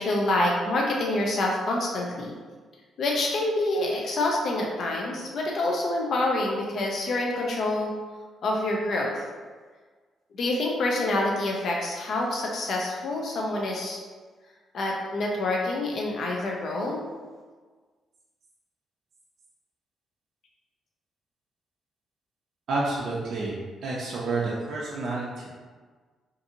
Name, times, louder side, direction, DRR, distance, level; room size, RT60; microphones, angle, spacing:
voice 1, 0.0-2.3 3.0-7.9 8.4-9.2 10.4-14.0 14.7-17.0, left 2 dB, 60° left, -1 dB, 0.4 m, -27 dB
voice 2, 22.7-23.5 23.8-25.5, right 3 dB, 65° right, -5 dB, 0.4 m, -29 dB
2.6 x 2.6 x 2.5 m, 1.5 s
cardioid pair, 110°, 0 cm